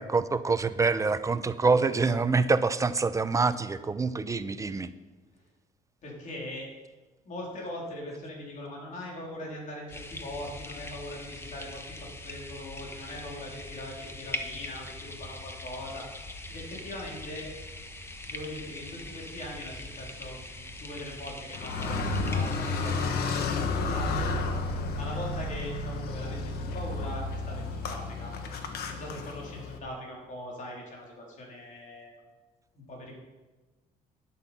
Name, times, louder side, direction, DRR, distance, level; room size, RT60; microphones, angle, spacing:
voice 1, 0.0-4.9, right 4 dB, 20° right, 12 dB, 0.6 m, -26 dB
voice 2, 6.0-6.7 7.3-16.1 16.5-17.5 18.2-24.3 25.0-26.4 26.7-28.3 28.9-32.2 32.7-33.1, left 1 dB, 50° left, -2 dB, 3.8 m, -41 dB
sound 1, 9.9-23.0, left 2 dB, 15° left, 1.0 m, -42 dB
Car, 21.5-29.8, left 3 dB, 70° left, 1.4 m, -31 dB
11.0 x 8.3 x 5.8 m, 1.2 s
cardioid pair, 110°, 17 cm